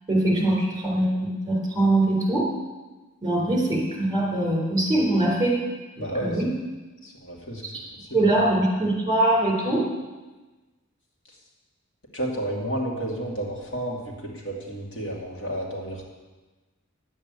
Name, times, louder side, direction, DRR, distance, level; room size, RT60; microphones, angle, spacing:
voice 1, 0.1-2.5 3.2-5.6 6.2-6.5 7.7-7.8 8.1-9.9, right 1 dB, 20° right, -2 dB, 3.8 m, -22 dB
voice 2, 6.0-6.4 7.0-7.6 8.0-8.3 11.3-11.4 12.1-16.0, right 1 dB, 60° left, -2 dB, 2.6 m, -31 dB
10.5 x 8.7 x 8.3 m, 1.2 s
head